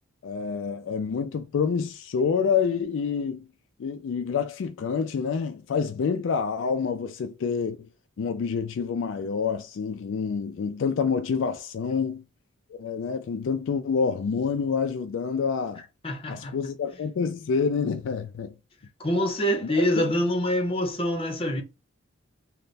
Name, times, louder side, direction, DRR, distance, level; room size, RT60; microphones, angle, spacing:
voice 1, 0.2-3.5 3.8-7.9 8.2-12.2 12.8-15.8 16.3-18.5 19.6-20.1, left 6 dB, 70° left, 0.3 m, -27 dB
voice 2, 16.0-16.5 19.0-21.6, equal, 30° left, 0.7 m, -25 dB
3.3 x 2.1 x 4.0 m
head